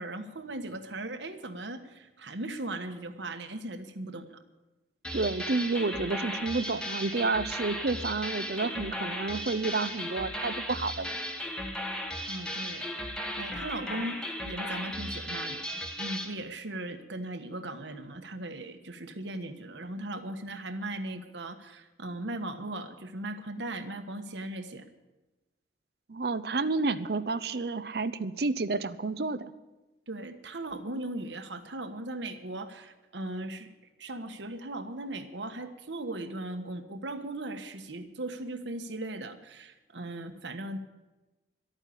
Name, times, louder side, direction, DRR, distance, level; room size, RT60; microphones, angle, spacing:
voice 1, 0.0-4.4 12.3-24.8 30.1-33.7 34.0-40.8, right 1 dB, 80° right, 7 dB, 1.3 m, -38 dB
sound 1, 5.0-16.3, equal, 5° left, 1.2 m, -36 dB
voice 2, 5.1-11.2 26.1-29.5, right 3 dB, 60° right, 14 dB, 0.6 m, -30 dB
12.5 x 9.1 x 9.9 m, 1.1 s
head